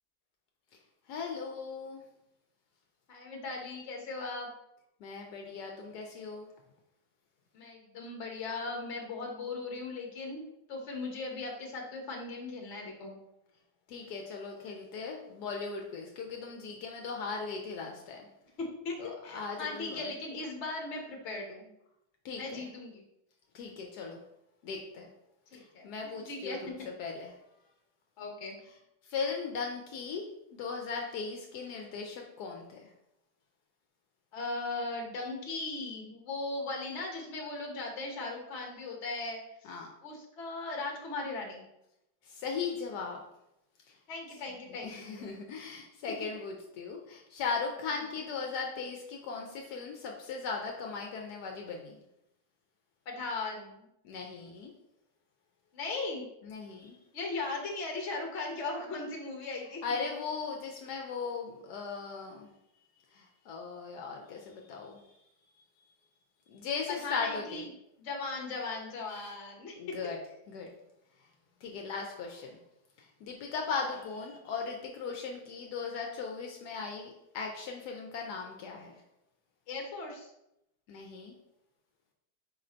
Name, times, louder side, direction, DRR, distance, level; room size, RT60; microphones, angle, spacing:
voice 1, 1.1-2.0 5.0-6.5 13.9-18.3 19.0-20.1 22.2-22.6 23.5-24.2 24.6-25.1 25.5-27.3 29.1-30.2 30.5-32.9 39.6-39.9 42.2-43.2 43.9-44.0 44.7-52.0 54.0-54.7 56.4-57.0 59.8-62.5 63.1-65.0 66.5-67.7 69.8-70.2 70.5-70.7 71.6-72.6 73.0-78.9 80.9-81.4, left 5 dB, 75° left, 1 dB, 1.1 m, -38 dB
voice 2, 3.1-4.5 7.5-13.2 18.6-21.7 22.3-23.0 25.5-26.6 28.2-28.6 34.3-39.7 40.0-41.7 44.1-45.3 46.2-46.3 53.1-53.8 55.7-56.3 57.1-59.8 67.0-67.7 68.0-69.8 79.7-80.3, left 3 dB, 50° left, 1 dB, 1.1 m, -38 dB
4.8 x 2.6 x 4.2 m, 0.83 s
omnidirectional pair, 1.8 m